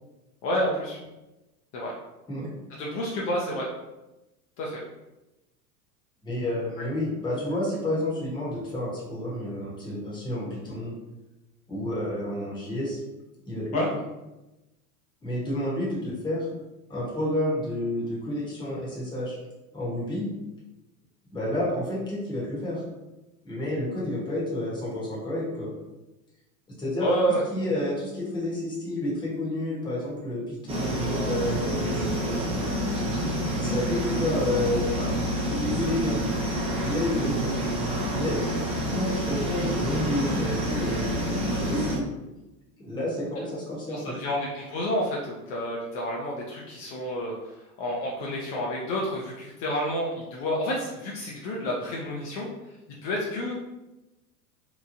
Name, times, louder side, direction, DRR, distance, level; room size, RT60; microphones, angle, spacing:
voice 1, 0.4-1.0 1.7-1.9 2.8-3.7 4.6-4.8 13.7-13.9 27.0-27.4 43.4-43.5 43.9-52.5 53.0-53.5, equal, 45° left, -3 dB, 0.6 m, -29 dB
voice 2, 6.2-10.9 11.7-13.0 13.5-14.0 15.2-16.5 16.9-19.4 19.7-20.3 21.3-22.8 23.4-25.7 26.8-27.1 27.5-32.5 33.6-35.1 35.5-36.2 36.8-37.6 38.1-38.3 38.9-42.0 42.8-44.2, left 1 dB, 10° left, -6 dB, 0.9 m, -30 dB
sound 1, 30.7-42.0, equal, 10° right, 0.6 m, -28 dB
3.0 x 2.2 x 2.6 m, 1.0 s
hypercardioid pair, 105°, 47 cm